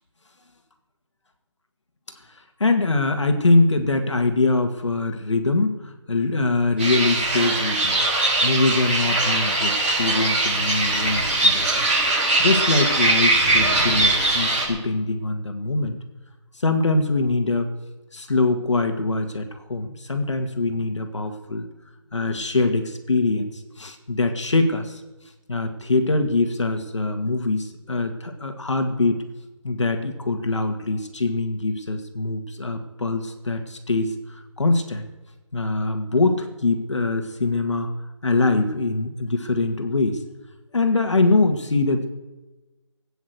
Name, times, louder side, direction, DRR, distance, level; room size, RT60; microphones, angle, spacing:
voice 1, 2.6-8.1 8.4-11.9 12.4-16.0 16.5-17.7 18.1-21.7 22.1-25.0 25.5-29.2 29.6-35.1 35.5-37.9 38.2-40.2 40.7-42.1, left 3 dB, 65° left, 6 dB, 1.9 m, -23 dB
sound 1, 6.8-14.6, right 2 dB, 20° right, 5.4 m, -21 dB
19.5 x 8.7 x 8.0 m, 1.1 s
hypercardioid pair, 180°, 16 cm